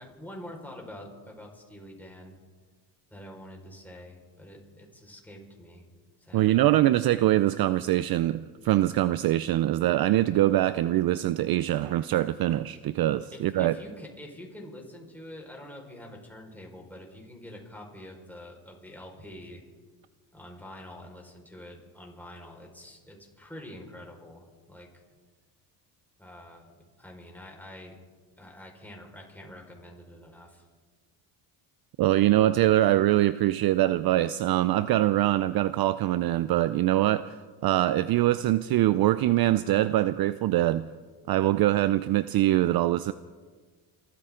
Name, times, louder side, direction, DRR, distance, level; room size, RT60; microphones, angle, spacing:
voice 1, 0.0-2.3 3.1-5.8 6.2-6.7 13.3-19.6 20.3-24.9 26.2-26.7 27.0-28.0 28.4-30.7, left 1 dB, 5° left, -1 dB, 4.9 m, -46 dB
voice 2, 6.3-13.7 32.0-37.4 37.6-40.9 41.3-43.1, right 14 dB, 50° right, 15 dB, 0.5 m, -23 dB
27.0 x 14.0 x 3.8 m, 1.4 s
supercardioid pair, 90°, 49 cm